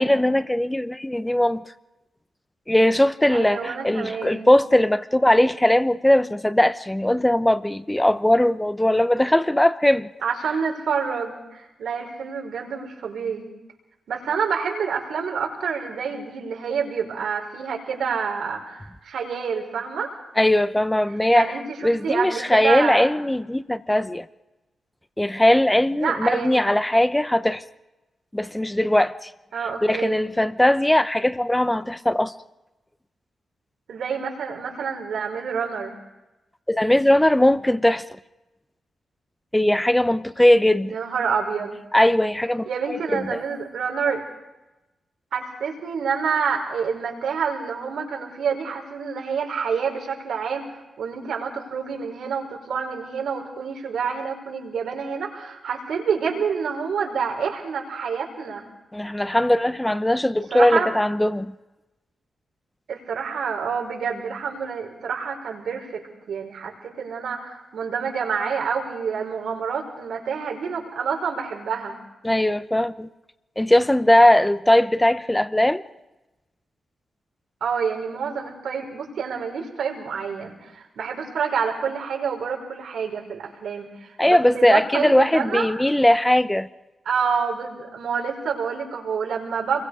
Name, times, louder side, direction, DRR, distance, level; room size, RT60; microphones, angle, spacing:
voice 1, 0.0-1.6 2.7-10.1 20.4-21.5 21.8-24.3 25.2-27.6 28.3-29.3 29.8-32.3 36.7-38.0 39.5-40.9 41.9-42.7 43.1-43.4 58.9-61.5 72.2-73.1 73.6-75.8 84.2-86.7, left 1 dB, 5° left, 0.8 m, -19 dB
voice 2, 3.3-4.5 10.2-13.5 14.1-20.1 21.3-23.1 25.9-26.6 29.5-30.2 33.9-35.9 40.8-41.8 42.7-44.2 45.3-50.7 51.0-58.7 60.5-60.9 62.9-72.0 77.6-85.7 87.1-89.9, right 6 dB, 90° right, 5.6 m, -28 dB
28.0 x 22.5 x 5.0 m
wide cardioid pair, 170°, 0 cm